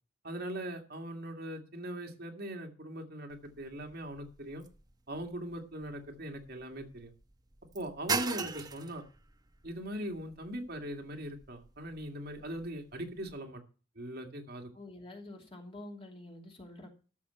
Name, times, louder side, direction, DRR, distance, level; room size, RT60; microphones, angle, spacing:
voice 1, 0.2-4.7 5.1-7.1 7.7-9.0 9.6-13.6 14.0-14.7, right 1 dB, 60° right, 3 dB, 2.0 m, -40 dB
sound 1, 3.3-13.4, right 4 dB, 20° right, 0.9 m, -42 dB
voice 2, 14.7-17.0, left 1 dB, 30° left, 2 dB, 2.8 m, -48 dB
13.0 x 6.8 x 5.7 m, 0.36 s
head